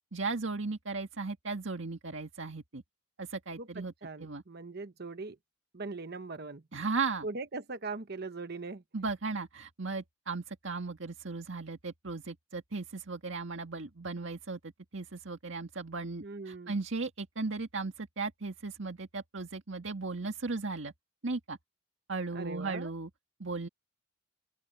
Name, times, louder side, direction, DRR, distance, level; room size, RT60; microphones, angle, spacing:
voice 1, 0.1-2.8 3.2-3.9 4.2-4.4 6.7-7.3 8.9-20.9 21.2-21.6 22.1-23.1 23.4-23.7, right 3 dB, 75° right, 1.8 m, -36 dB
voice 2, 3.6-5.4 5.7-6.6 7.2-8.8 16.2-16.7 22.3-22.9, right 3 dB, 55° right, 1.0 m, -40 dB
open air
head